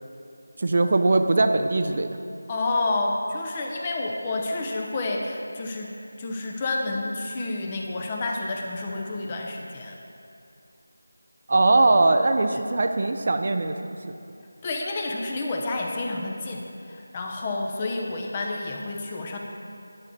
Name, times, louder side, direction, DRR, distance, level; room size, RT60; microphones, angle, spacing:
voice 1, 0.6-2.2 11.5-13.8, right 2 dB, 45° right, 7 dB, 0.5 m, -21 dB
voice 2, 2.5-5.9 6.2-10.0 12.5-12.6 14.6-19.4, left 2 dB, 20° left, 1 dB, 0.8 m, -29 dB
10.5 x 6.9 x 4.7 m, 2.6 s
figure-of-eight pair, 165°, 0 cm